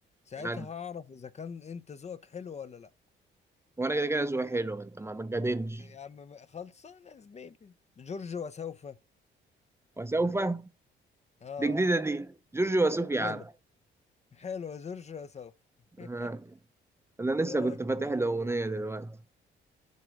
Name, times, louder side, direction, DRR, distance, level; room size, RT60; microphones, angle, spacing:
voice 1, 0.3-2.9 5.8-9.0 11.4-11.8 13.2-13.5 14.3-15.5 16.0-16.3 17.5-18.2, left 6 dB, 35° left, 0.6 m, -41 dB
voice 2, 3.8-5.9 10.0-10.7 11.6-13.4 16.0-16.4 17.2-19.2, right 2 dB, 15° right, 0.5 m, -29 dB
9.4 x 3.9 x 4.7 m
cardioid pair, 90°, 20 cm